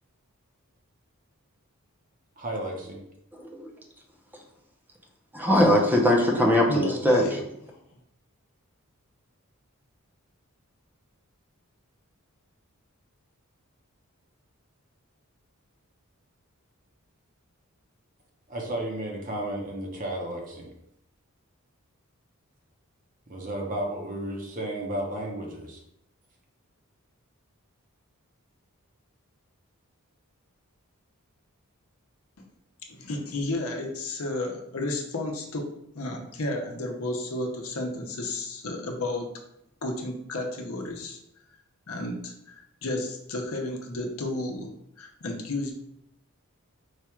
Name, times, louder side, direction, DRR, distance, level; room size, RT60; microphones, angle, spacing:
voice 1, 2.4-3.0 18.5-20.7 23.3-25.8, right 1 dB, 40° right, 1 dB, 0.9 m, -33 dB
voice 2, 5.3-7.3, left 1 dB, 10° right, 1 dB, 0.7 m, -21 dB
voice 3, 6.3-7.4 32.4-32.5 32.9-35.7 35.9-39.3 39.8-41.2 41.9-44.7 45.0-45.7, left 1 dB, 80° left, 2 dB, 0.8 m, -32 dB
4.9 x 2.4 x 4.3 m, 0.77 s
head